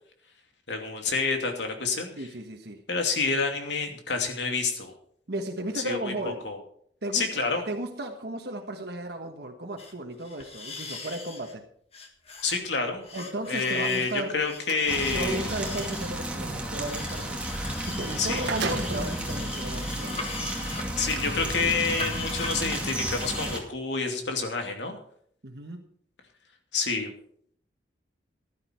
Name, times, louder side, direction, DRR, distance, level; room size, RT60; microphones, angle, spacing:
voice 1, 0.7-2.3 2.9-4.9 5.7-6.1 6.4-6.6 7.1-7.6 12.4-13.0 13.5-15.5 18.2-18.4 21.0-25.0 26.7-27.1, left 4 dB, 80° left, 4 dB, 2.6 m, -28 dB
voice 2, 2.1-2.8 5.3-6.4 7.0-11.6 13.1-14.4 15.1-20.3 25.4-25.9, right 1 dB, 60° right, 3 dB, 1.4 m, -35 dB
sound 1, 9.8-9.9 10.2-11.5 11.9-12.6 13.0-16.1 16.8-23.6, left 3 dB, 35° left, 1.8 m, -40 dB
sound 2, 13.9-14.9 17.7-17.8 18.1-19.2 19.9-20.0 21.0-21.2, right 4 dB, 80° right, 1.7 m, -34 dB
sound 3, 14.9-23.6, right 1 dB, 5° right, 2.3 m, -33 dB
14.5 x 11.5 x 4.5 m, 0.64 s
head